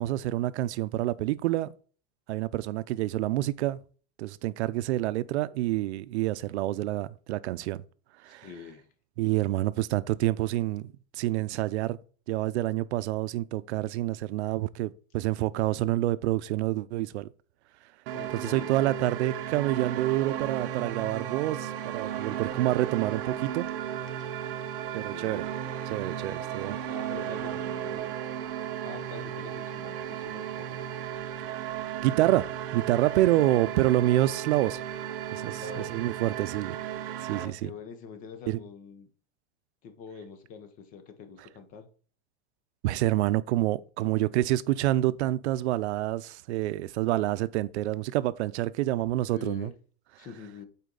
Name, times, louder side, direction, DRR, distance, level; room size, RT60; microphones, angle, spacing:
voice 1, 0.0-1.7 2.3-3.8 4.2-7.8 8.2-8.5 9.2-12.0 12.3-17.3 18.4-23.7 24.9-25.4 25.9-26.8 32.0-34.8 35.3-35.6 35.9-36.8 37.2-37.7 38.5-38.6 42.8-49.7, right 15 dB, 85° right, 0.6 m, -27 dB
voice 2, 8.4-8.9 18.1-18.7 24.1-24.3 25.1-25.4 26.6-28.1 28.8-30.9 35.5-36.0 37.3-39.1 39.8-41.9 49.3-49.7 50.2-50.6, left 6 dB, 25° left, 0.8 m, -45 dB
sound 1, 18.1-37.5, right 10 dB, 55° right, 0.9 m, -35 dB
8.3 x 4.3 x 3.8 m
supercardioid pair, 170°, 33 cm